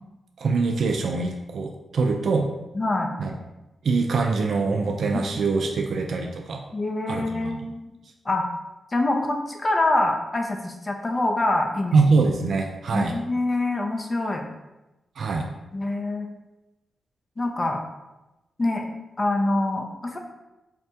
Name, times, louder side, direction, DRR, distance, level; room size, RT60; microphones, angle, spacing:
voice 1, 0.4-2.5 3.2-3.3 3.8-6.6 7.1-7.6 11.9-13.1 15.2-15.5, right 4 dB, 70° right, 2 dB, 0.3 m, -23 dB
voice 2, 2.7-3.1 5.1-5.2 6.7-7.8 8.2-8.5 8.9-12.0 12.9-14.4 15.7-16.3 17.4-17.8 18.6-18.9 19.2-20.2, left 2 dB, 35° left, 3 dB, 0.5 m, -25 dB
4.1 x 2.1 x 2.7 m, 1.0 s
supercardioid pair, 45°, 0 cm